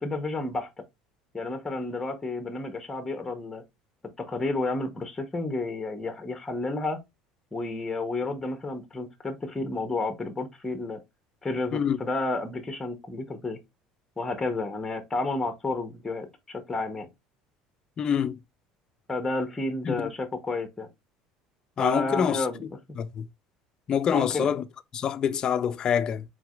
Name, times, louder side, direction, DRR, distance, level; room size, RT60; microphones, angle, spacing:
voice 1, 0.0-0.7 1.3-3.6 4.2-7.0 7.5-11.0 11.4-13.6 14.2-17.1 19.1-20.9 21.8-22.6 24.1-24.5, left 2 dB, 10° left, 0.9 m, -31 dB
voice 2, 18.0-18.4 19.8-20.1 21.8-22.4 23.0-23.2 23.9-24.6 24.9-26.2, left 8 dB, 35° left, 0.4 m, -26 dB
4.6 x 3.9 x 2.4 m
cardioid pair, 130°, 2 cm